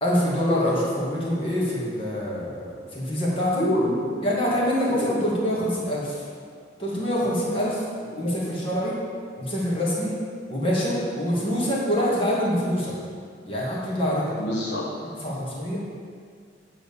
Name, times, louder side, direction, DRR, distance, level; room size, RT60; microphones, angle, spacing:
voice 1, 0.0-3.6 4.2-6.2 6.8-7.8 8.1-9.0 9.4-10.1 10.5-12.9 13.4-14.3 15.2-15.8, equal, 30° left, -6 dB, 1.9 m, -25 dB
voice 2, 3.6-4.2 4.8-5.2 8.2-8.3 14.4-14.8, equal, 75° left, -3 dB, 1.2 m, -26 dB
8.9 x 3.9 x 7.1 m, 2.1 s
head